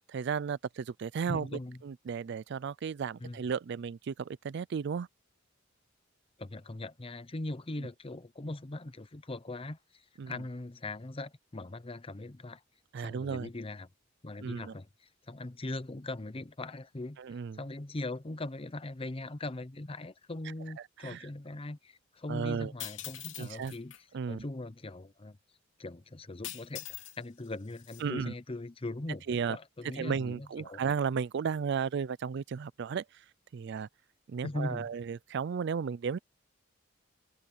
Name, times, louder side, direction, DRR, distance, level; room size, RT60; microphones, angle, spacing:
voice 1, 0.1-5.1 10.2-10.3 12.9-13.5 14.4-14.7 17.2-17.6 20.8-21.3 22.3-22.7 23.4-23.7 24.1-24.4 28.0-28.3 29.3-29.6 30.0-33.2 33.5-33.9 34.3-36.2, right 6 dB, 60° right, 0.4 m, -34 dB
voice 2, 1.3-1.8 3.2-3.4 6.4-12.6 13.0-13.9 14.2-14.9 15.3-23.9 24.3-25.4 25.8-26.9 27.2-29.2 29.5-30.8 34.4-34.9, left 2 dB, 30° left, 0.8 m, -40 dB
sound 1, 22.8-24.0 26.4-27.2 27.5-28.0, left 13 dB, 75° left, 2.4 m, -43 dB
open air
head